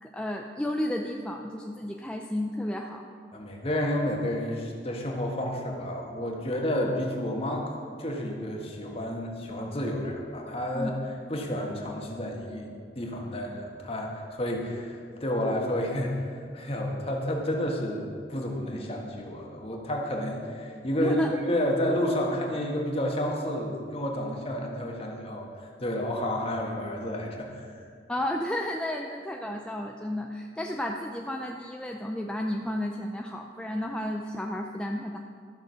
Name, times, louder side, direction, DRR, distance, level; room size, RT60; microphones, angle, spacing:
voice 1, 0.0-3.0 10.7-10.9 21.0-21.4 28.1-35.2, left 1 dB, 5° left, 1 dB, 0.4 m, -32 dB
voice 2, 3.3-7.7 8.0-10.9 11.3-21.2 21.4-27.7, left 1 dB, 35° left, 0 dB, 1.5 m, -30 dB
13.0 x 6.4 x 6.3 m, 2.2 s
head